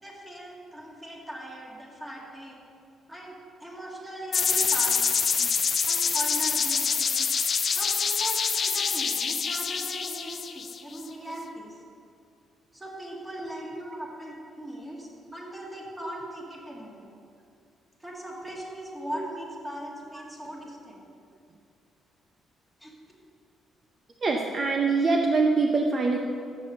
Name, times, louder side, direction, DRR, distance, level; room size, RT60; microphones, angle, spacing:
voice 1, 0.0-2.6 3.1-5.1 5.9-7.3 7.7-11.8 12.7-17.1 18.0-21.0 22.8-22.9, right 1 dB, 10° right, -2 dB, 2.0 m, -39 dB
sound 1, 4.3-11.0, left 6 dB, 45° left, 0.5 m, -26 dB
voice 2, 24.2-26.2, right 3 dB, 45° right, 1 dB, 0.6 m, -24 dB
6.9 x 6.7 x 6.6 m, 2.4 s
cardioid pair, 90°, 0 cm